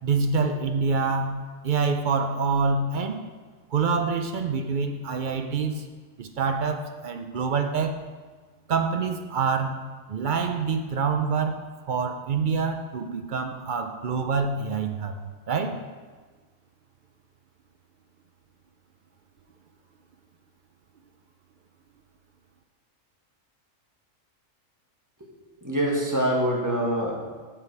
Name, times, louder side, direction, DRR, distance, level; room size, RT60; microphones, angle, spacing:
voice 1, 0.0-3.2 3.7-5.9 6.2-8.0 8.7-9.8 10.1-15.2 15.5-15.8, right 5 dB, 60° right, 6 dB, 0.5 m, -26 dB
voice 2, 25.6-27.1, right 1 dB, 15° right, -3 dB, 1.3 m, -24 dB
6.9 x 6.7 x 4.6 m, 1.4 s
omnidirectional pair, 1.4 m